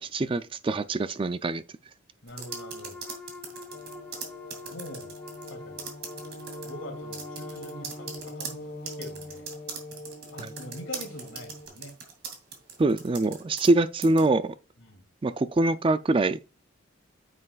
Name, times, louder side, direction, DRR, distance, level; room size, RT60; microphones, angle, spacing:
voice 1, 0.0-1.6 10.4-10.5 12.8-14.5 15.2-16.4, right 2 dB, 25° right, 0.3 m, -24 dB
voice 2, 2.2-3.0 4.7-5.1 5.5-5.9 6.6-8.7 9.0-9.5 10.3-11.9 14.8-15.1, left 1 dB, 65° left, 2.7 m, -43 dB
sound 1, 2.3-5.5 5.8-6.7 7.1-13.7 14.0-14.3, right 6 dB, 50° right, 2.4 m, -40 dB
Wind instrument woodwind instrument, 2.5-8.2, left 3 dB, 5° left, 0.8 m, -45 dB
sound 2, 3.7-11.7, left 1 dB, 50° left, 1.5 m, -43 dB
9.5 x 7.7 x 2.3 m
head